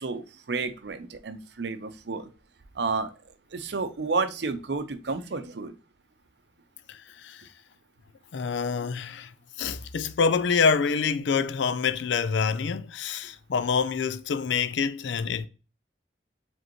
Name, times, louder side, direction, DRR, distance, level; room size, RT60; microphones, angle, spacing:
voice 1, 0.0-2.3 2.8-3.1 3.5-5.7, right 4 dB, 70° right, 0.6 m, -31 dB
voice 2, 6.9-7.4 8.3-9.3 9.6-15.5, left 5 dB, 85° left, 0.4 m, -26 dB
5.1 x 3.6 x 2.9 m
head